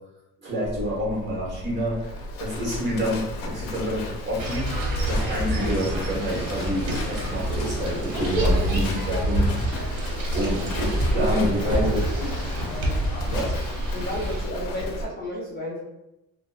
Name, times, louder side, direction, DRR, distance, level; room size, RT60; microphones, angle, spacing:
voice 1, 0.4-2.1 2.4-4.7 5.1-9.6 10.3-12.0 13.3-13.5, equal, 35° right, -5 dB, 1.2 m, -28 dB
Livestock farm animals working animals, 0.6-15.0, left 1 dB, 75° left, 0.6 m, -32 dB
sound 1, 4.4-14.4, right 1 dB, 75° right, 0.8 m, -28 dB
voice 2, 5.4-5.7 11.1-12.3 13.9-15.8, left 1 dB, 30° left, -4 dB, 0.5 m, -32 dB
2.6 x 2.1 x 2.3 m, 0.90 s
cardioid pair, 125°, 33 cm